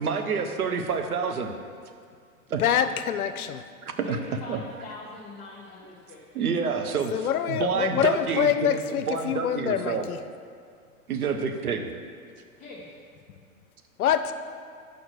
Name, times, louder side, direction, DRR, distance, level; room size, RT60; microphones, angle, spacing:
voice 1, 0.0-1.5 2.5-2.6 3.8-4.2 4.5-4.6 6.3-10.1 11.1-11.9, right 5 dB, 85° right, 6 dB, 0.8 m, -28 dB
voice 2, 2.6-3.6 7.1-10.2 14.0-14.3, left 9 dB, 85° left, 11 dB, 0.5 m, -25 dB
voice 3, 4.0-6.5 12.6-12.9, left 2 dB, 15° left, -5 dB, 0.8 m, -43 dB
5.3 x 5.1 x 6.1 m, 2.2 s
hypercardioid pair, 100°, 43 cm